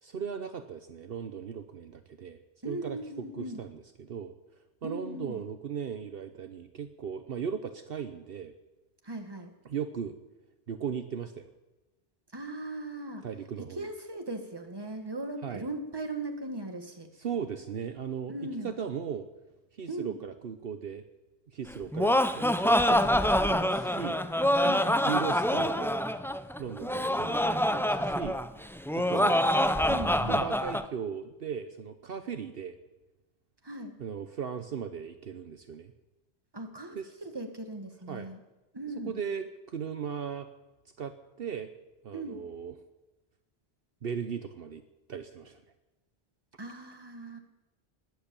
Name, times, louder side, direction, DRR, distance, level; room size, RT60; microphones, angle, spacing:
voice 1, 0.0-2.4 2.6-8.5 9.6-10.2 10.7-11.5 13.2-13.9 15.4-15.6 17.2-18.4 18.6-19.3 19.7-21.0 21.5-24.2 25.0-26.0 26.6-28.4 28.9-29.4 30.2-32.8 34.0-35.9 36.9-37.1 38.1-38.3 39.0-40.5 41.0-41.7 42.0-42.7 44.0-44.8 45.1-45.6, right 7 dB, 65° right, 9 dB, 1.0 m, -37 dB
voice 2, 2.6-3.6 4.8-5.5 9.0-9.5 12.3-13.2 13.6-17.1 18.3-18.7 19.9-20.2 24.6-25.1 29.2-30.5 33.6-34.0 36.5-38.4 38.7-39.2 42.1-42.4 46.6-47.4, right 2 dB, 20° right, 6 dB, 1.7 m, -39 dB
Laughter, 21.7-30.8, left 1 dB, 5° left, 0.4 m, -26 dB
20.5 x 8.2 x 8.7 m, 1.1 s
omnidirectional pair, 1.1 m